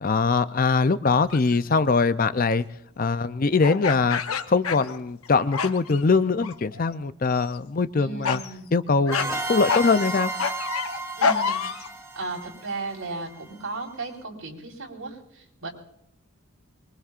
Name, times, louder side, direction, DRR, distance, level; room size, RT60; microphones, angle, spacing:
voice 1, 0.0-2.7 3.0-4.2 4.5-8.4 8.7-10.3, left 4 dB, 40° left, 13 dB, 0.5 m, -22 dB
sound 1, 1.3-1.6 3.6-5.3 5.5-6.0 6.4-6.9 7.3-7.6 8.2-8.5 9.1-9.3 9.7-11.9, left 5 dB, 90° left, 0.9 m, -27 dB
voice 2, 8.0-8.7 11.2-11.9 12.1-15.7, right 3 dB, 85° right, -1 dB, 4.4 m, -35 dB
sound 2, 9.1-13.6, right 2 dB, 15° right, 1.2 m, -33 dB
24.0 x 22.5 x 2.5 m, 0.75 s
head